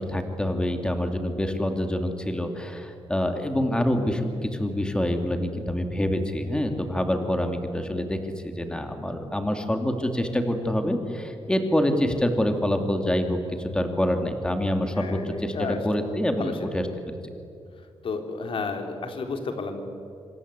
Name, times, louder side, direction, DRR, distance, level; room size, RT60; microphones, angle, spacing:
voice 1, 0.0-16.9, left 1 dB, 10° left, 5 dB, 2.7 m, -26 dB
voice 2, 14.9-15.8 16.4-16.9 18.0-19.8, left 4 dB, 60° left, 5 dB, 3.7 m, -32 dB
26.5 x 26.0 x 8.4 m, 2.5 s
wide cardioid pair, 115°, 10 cm